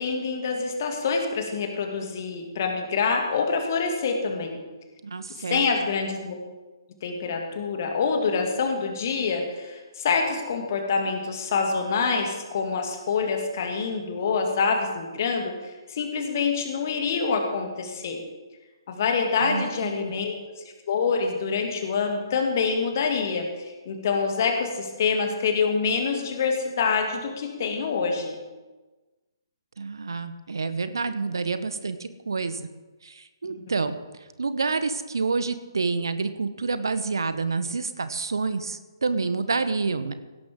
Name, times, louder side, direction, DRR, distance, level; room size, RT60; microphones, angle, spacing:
voice 1, 0.0-4.6 5.5-6.4 7.0-18.2 18.9-28.4, left 5 dB, 40° left, 3 dB, 2.3 m, -26 dB
voice 2, 5.0-5.7 19.4-20.1 29.8-32.7 33.0-33.9 34.4-40.1, right 4 dB, 65° right, 12 dB, 1.0 m, -28 dB
16.5 x 12.5 x 3.7 m, 1.2 s
figure-of-eight pair, 130°, 2 cm